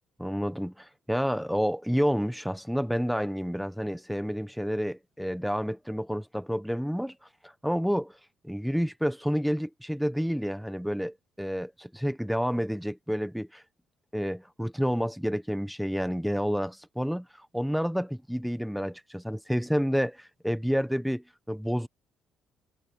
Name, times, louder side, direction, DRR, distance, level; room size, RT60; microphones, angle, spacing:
voice 1, 0.2-7.1 7.4-8.1 8.4-13.6 14.1-21.9, equal, ahead, 1.2 m, -29 dB
cardioid pair, 115°, 0 cm